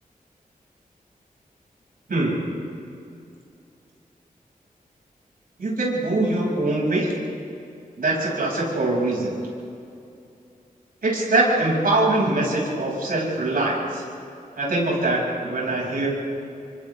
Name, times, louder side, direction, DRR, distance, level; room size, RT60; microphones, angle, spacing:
voice 1, 2.1-2.4 5.6-7.1 8.0-9.3 11.0-14.0 14.6-16.1, right 2 dB, 75° right, -4 dB, 7.4 m, -23 dB
30.0 x 24.5 x 3.8 m, 2.6 s
wide cardioid pair, 115°, 15 cm